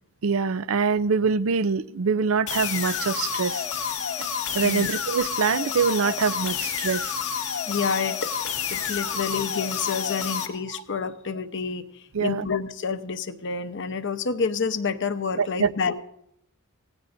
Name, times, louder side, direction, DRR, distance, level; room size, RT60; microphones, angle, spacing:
voice 1, 0.2-3.6 4.2-4.3 4.5-7.1 8.8-8.9 12.1-12.5 15.4-15.7, right 5 dB, 70° right, 0.5 m, -24 dB
sound 1, 2.5-10.5, left 7 dB, 85° left, 1.8 m, -29 dB
voice 2, 7.7-8.3 8.7-16.0, left 5 dB, 60° left, 0.9 m, -29 dB
26.5 x 17.5 x 2.6 m
head